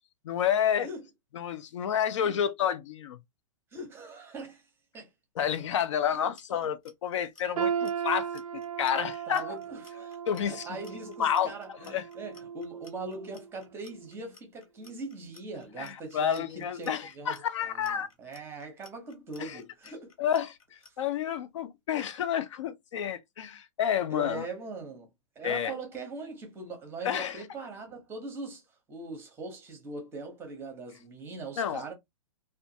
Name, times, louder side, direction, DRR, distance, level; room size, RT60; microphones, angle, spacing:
voice 1, 0.2-0.9 1.3-3.2 5.4-9.5 10.3-10.8 11.2-12.1 15.8-18.1 19.4-19.6 20.2-24.5 25.4-25.7 27.0-27.4 31.6-31.8, left 9 dB, 60° left, 0.4 m, -30 dB
voice 2, 3.7-4.7 4.9-5.1 5.4-5.5 9.3-17.4 17.6-20.1 24.1-25.1 25.4-28.6 28.9-31.9, right 3 dB, 15° right, 0.7 m, -41 dB
Clock, 6.1-20.9, left 3 dB, 80° left, 1.3 m, -56 dB
sound 1, 7.6-13.5 13.9-14.1 14.9-15.0, right 8 dB, 90° right, 0.5 m, -36 dB
2.5 x 2.2 x 2.6 m
hypercardioid pair, 150°, 17 cm